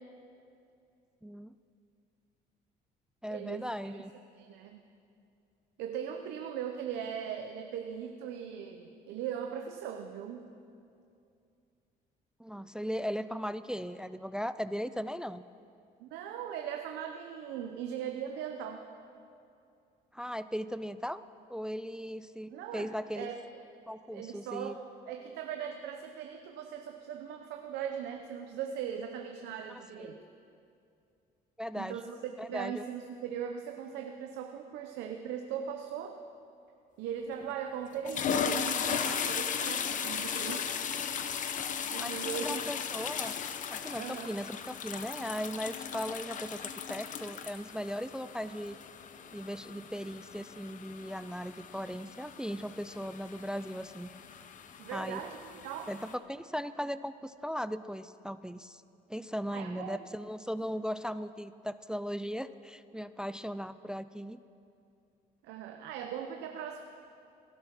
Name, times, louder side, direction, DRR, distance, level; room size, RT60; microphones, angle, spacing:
voice 1, 1.2-1.5 3.2-4.1 12.4-15.4 20.1-21.2 21.5-23.3 23.9-24.8 29.7-30.2 31.6-32.0 32.4-32.8 42.0-43.4 43.7-48.8 49.3-54.1 54.9-55.2 55.9-58.8 59.1-64.4, equal, 5° right, 14 dB, 0.3 m, -38 dB
voice 2, 3.3-4.0 4.4-4.8 5.8-10.5 16.0-18.9 22.5-23.4 24.1-30.2 31.8-36.2 37.0-40.7 41.9-42.6 44.0-44.4 54.8-55.9 59.5-60.1 65.4-66.8, right 8 dB, 85° right, 5 dB, 0.8 m, -39 dB
sound 1, 37.3-37.5 37.9-56.1, left 7 dB, 50° left, 0.9 m, -37 dB
17.0 x 11.0 x 6.0 m, 2.5 s
cardioid pair, 110°, 17 cm